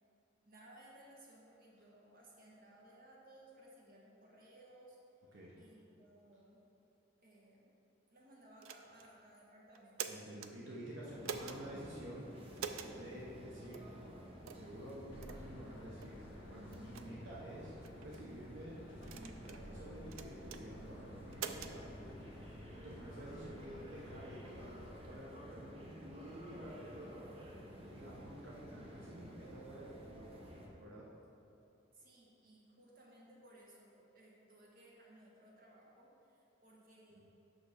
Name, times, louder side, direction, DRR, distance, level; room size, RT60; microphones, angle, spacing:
voice 1, 0.4-5.0 5.6-6.6 7.2-7.7 8.1-10.2 31.9-37.2, right 1 dB, 45° right, -4 dB, 1.3 m, -61 dB
voice 2, 5.3-5.7 10.1-12.4 12.8-13.9 14.5-16.2 16.5-21.9 22.7-24.7 25.1-27.2 27.8-30.3 30.8-31.1, equal, 70° right, -5 dB, 1.0 m, -51 dB
sound 1, 8.6-9.1 9.7-10.5 11.2-11.6 12.6-12.9 13.7-13.9 14.5-14.7 15.2-15.4 16.0-16.1 16.7-17.1 17.8-18.2 19.0-19.6 20.1-20.6 21.3-21.7, right 7 dB, 85° right, 0.4 m, -44 dB
sound 2, 11.1-30.7, equal, 30° right, 0.8 m, -52 dB
sound 3, 15.1-25.1, left 1 dB, 60° left, 0.6 m, -55 dB
6.5 x 6.0 x 5.0 m, 2.8 s
head